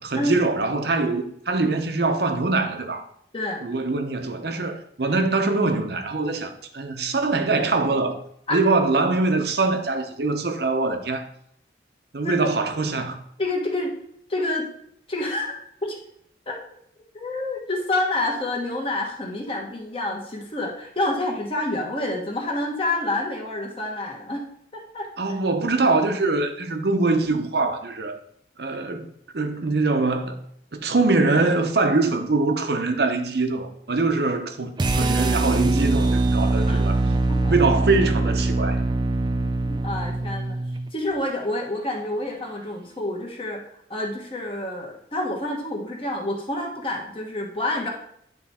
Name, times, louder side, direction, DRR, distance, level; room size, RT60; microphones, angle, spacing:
voice 1, 0.0-3.1 3.6-8.2 8.5-11.3 12.1-13.2 25.2-28.2 28.6-30.4 30.7-37.0 37.5-38.8, right 3 dB, 60° right, 0.8 m, -23 dB
voice 2, 13.4-13.9 14.3-14.6 15.1-15.5 15.8-15.9 16.5-16.6 17.1-24.4 24.7-25.1 36.7-37.5 39.4-40.6 40.9-43.6 43.9-47.9, left 1 dB, 30° left, 1.2 m, -28 dB
sound 1, 34.8-40.9, right 2 dB, 25° right, 0.3 m, -22 dB
9.7 x 3.4 x 4.2 m
head